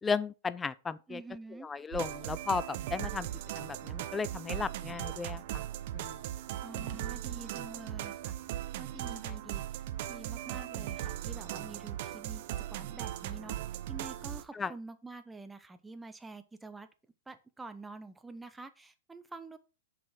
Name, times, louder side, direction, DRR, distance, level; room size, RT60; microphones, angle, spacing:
voice 1, 0.0-1.2 1.6-3.3 3.6-5.6 5.9-6.2 14.5-14.7, left 5 dB, 15° left, 0.5 m, -35 dB
voice 2, 1.1-1.7 6.6-8.4 8.8-9.8 10.1-12.4 12.7-16.9 17.3-19.6, right 3 dB, 10° right, 1.0 m, -47 dB
sound 1, 1.9-14.4, right 12 dB, 55° right, 0.8 m, -38 dB
7.2 x 5.2 x 5.8 m
hypercardioid pair, 115°, 0 cm